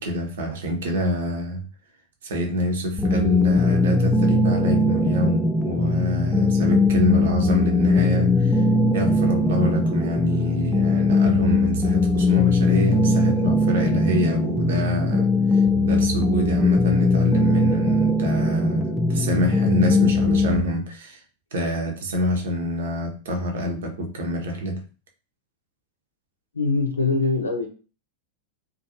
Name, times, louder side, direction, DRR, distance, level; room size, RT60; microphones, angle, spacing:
voice 1, 0.0-1.6 2.2-8.6 8.9-15.3 15.5-21.2 21.5-24.8, left 1 dB, 60° right, 0.6 m, -26 dB
sound 1, 3.0-20.6, left 2 dB, 5° left, 0.3 m, -20 dB
voice 2, 26.5-27.7, left 3 dB, 75° left, 0.6 m, -22 dB
2.5 x 2.3 x 2.7 m
figure-of-eight pair, 90°, 0 cm